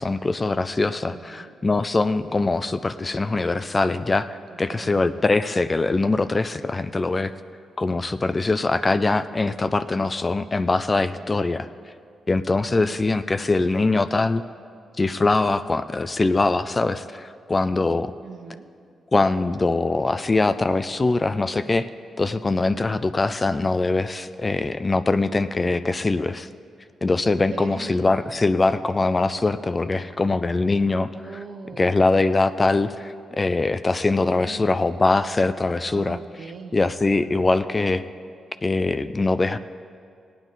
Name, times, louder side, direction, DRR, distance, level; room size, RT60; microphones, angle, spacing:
voice 1, 0.0-7.3 7.8-11.7 12.3-14.4 15.0-18.1 19.1-21.9 22.2-26.5 27.0-31.1 31.8-36.2 36.7-38.0 38.6-39.6, left 3 dB, 30° left, 12 dB, 0.4 m, -22 dB
voice 2, 1.1-1.5 4.5-5.1 10.9-11.4 12.7-13.0 18.2-18.7 22.7-23.0 27.2-28.1 31.1-31.9 34.4-34.6 35.8-36.9, right 4 dB, 60° right, 3 dB, 1.1 m, -40 dB
18.0 x 9.2 x 4.0 m, 2.3 s
cardioid pair, 70°, 0 cm